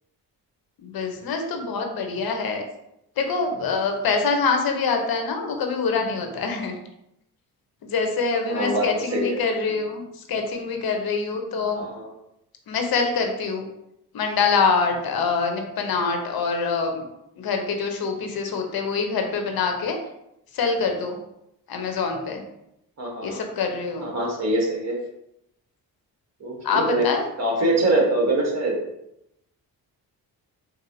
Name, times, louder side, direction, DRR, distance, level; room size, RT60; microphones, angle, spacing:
voice 1, 0.8-2.6 3.2-6.7 7.8-11.9 12.7-13.7 14.1-17.1 17.4-20.0 20.5-21.2 21.7-22.4 23.2-24.2 26.6-27.3, left 4 dB, 65° left, 4 dB, 0.8 m, -25 dB
voice 2, 8.5-8.9 9.1-9.4 11.8-12.1 23.0-23.4 24.0-25.0 26.4-27.0 27.4-28.7, right 2 dB, 45° right, -1 dB, 1.3 m, -23 dB
3.9 x 2.7 x 2.7 m, 0.81 s
cardioid pair, 80°, 38 cm